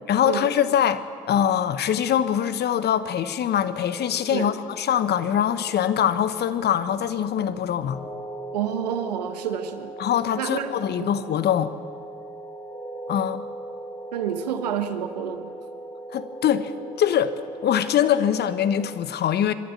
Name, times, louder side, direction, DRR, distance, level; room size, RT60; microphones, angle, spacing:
voice 1, 0.1-8.0 10.0-11.7 13.1-13.4 16.1-16.7 17.0-17.3 17.6-19.5, left 9 dB, 55° left, 13 dB, 1.2 m, -23 dB
sound 1, 3.8-19.0, right 2 dB, 20° left, 7.4 m, -39 dB
voice 2, 8.5-9.9 10.4-10.7 11.0-11.1 14.1-15.5, right 9 dB, 90° right, 10 dB, 1.1 m, -29 dB
25.5 x 13.0 x 8.3 m, 2.2 s
hypercardioid pair, 55°, 20 cm